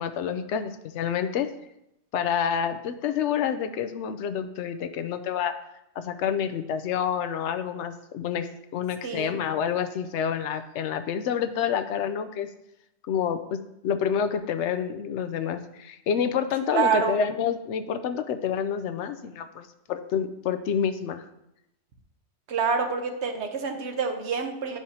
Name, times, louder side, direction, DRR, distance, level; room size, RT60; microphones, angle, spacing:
voice 1, 0.0-1.5 2.1-5.6 6.0-12.5 13.1-13.6 13.8-21.2, left 8 dB, 85° left, 10 dB, 0.9 m, -28 dB
voice 2, 16.7-17.2 22.5-24.8, right 6 dB, 75° right, 5 dB, 1.1 m, -27 dB
10.5 x 4.7 x 2.8 m, 0.84 s
omnidirectional pair, 1.2 m